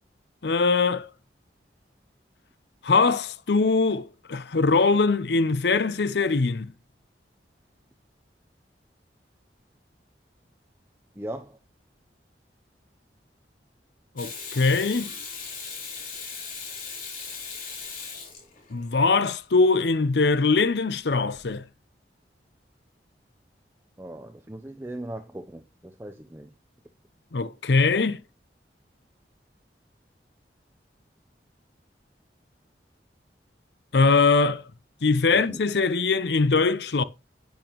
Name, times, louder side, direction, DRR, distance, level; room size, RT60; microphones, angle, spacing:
voice 1, 0.4-1.1 2.8-6.7 14.2-15.1 18.7-21.7 27.3-28.2 33.9-34.6 35.0-37.0, left 4 dB, 70° left, 0.7 m, -22 dB
voice 2, 11.2-11.6 24.0-26.5 35.3-35.6, right 1 dB, 15° right, 0.6 m, -38 dB
Water tap faucet / Sink (filling or washing), 14.2-18.9 21.3-21.5, left 5 dB, 50° left, 3.5 m, -38 dB
10.0 x 9.0 x 3.0 m
head